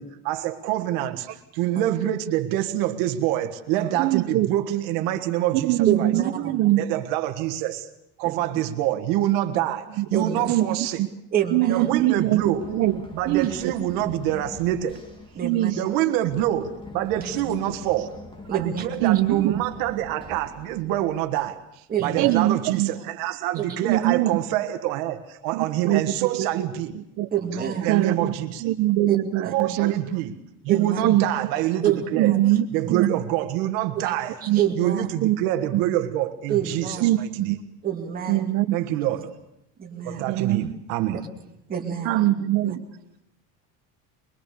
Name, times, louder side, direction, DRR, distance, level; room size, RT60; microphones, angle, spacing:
voice 1, 0.0-6.1 6.8-7.9 8.2-11.0 11.7-12.7 13.1-15.0 15.8-18.1 18.5-27.0 27.8-28.7 29.5-30.3 30.6-32.3 32.7-37.5 38.7-39.4 40.0-41.2, right 13 dB, 65° right, 1.7 m, -26 dB
voice 2, 4.0-4.5 5.6-6.8 10.0-10.1 10.5-11.1 11.5-13.7 15.4-15.8 19.0-19.5 22.2-22.9 23.8-24.3 25.5-26.6 26.9-27.3 27.8-28.3 28.6-29.9 31.0-31.3 32.1-33.1 34.5-34.6 35.2-35.4 35.7-35.8 37.0-37.6 38.3-38.7 40.3-40.7 42.0-42.8, right 15 dB, 45° right, 0.8 m, -22 dB
voice 3, 5.9-6.6 8.2-8.3 10.1-10.5 11.3-11.9 13.4-13.6 15.4-15.7 17.2-17.5 18.5-18.9 21.9-22.3 23.6-23.9 27.3-27.9 29.1-29.2 29.4-29.5 30.7-31.0 31.8-32.4 32.8-33.1 34.1-34.2 34.4-35.1 36.5-37.1 37.8-38.5 39.8-40.3 41.7-42.3 42.6-42.8, right 9 dB, 25° right, 2.4 m, -28 dB
Run, 11.8-21.5, left 2 dB, 15° left, 2.3 m, -43 dB
23.0 x 22.5 x 6.8 m
cardioid pair, 175°, 38 cm